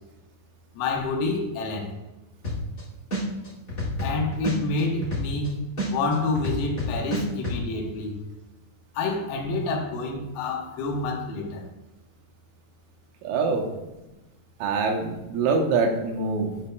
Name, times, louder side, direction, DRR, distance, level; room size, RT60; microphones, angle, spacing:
voice 1, 0.8-1.9 4.0-5.6 5.9-8.2 9.0-11.6, left 3 dB, 90° left, 1 dB, 3.9 m, -28 dB
sound 1, 2.4-2.8 3.1-5.5 5.8-7.6, equal, 50° left, 0.9 m, -29 dB
voice 2, 13.2-13.7 14.6-16.6, right 4 dB, 85° right, 2 dB, 3.7 m, -24 dB
11.5 x 7.0 x 2.3 m, 1.0 s
omnidirectional pair, 5.9 m